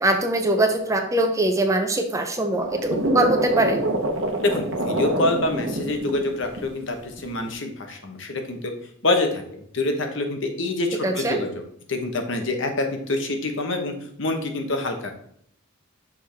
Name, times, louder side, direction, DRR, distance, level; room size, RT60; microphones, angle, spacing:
voice 1, 0.0-3.8 11.0-11.4, right 1 dB, 15° right, 4 dB, 0.6 m, -22 dB
sound 1, 2.5-6.7 7.2-7.5, right 1 dB, 75° right, 1.0 m, -26 dB
voice 2, 4.4-8.7 9.0-11.5 11.9-15.1, left 2 dB, 65° left, 4 dB, 1.1 m, -26 dB
6.2 x 4.7 x 3.5 m, 0.67 s
head